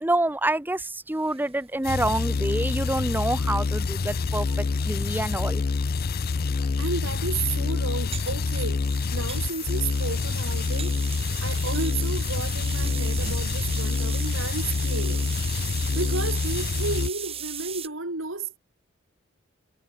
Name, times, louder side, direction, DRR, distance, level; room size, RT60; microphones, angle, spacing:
voice 1, 0.0-4.5 4.9-5.6, right 1 dB, 10° right, 0.9 m, -27 dB
sound 1, 1.1-17.9, right 8 dB, 30° right, 4.1 m, -39 dB
sound 2, 1.8-17.1, left 4 dB, 45° left, 0.5 m, -27 dB
voice 2, 6.8-11.0 11.4-15.3 15.9-18.6, right 3 dB, 70° right, 3.8 m, -32 dB
sound 3, 7.7-10.2 10.5-14.0, equal, 45° right, 6.7 m, -44 dB
head